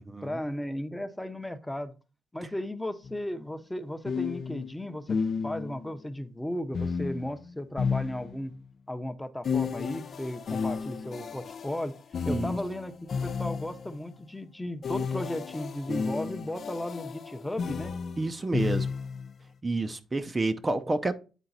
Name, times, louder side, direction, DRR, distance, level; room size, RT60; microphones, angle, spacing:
voice 1, 0.2-1.9 2.3-8.5 8.9-11.9 12.3-17.9, left 1 dB, 5° left, 0.8 m, -35 dB
sound 1, 3.0-3.2 4.1-5.9 6.7-8.7 9.4-14.0 14.8-19.3, left 5 dB, 50° left, 0.5 m, -33 dB
voice 2, 18.2-18.9 19.6-21.1, right 2 dB, 25° right, 0.6 m, -29 dB
9.1 x 3.8 x 4.1 m
cardioid pair, 90°, 0 cm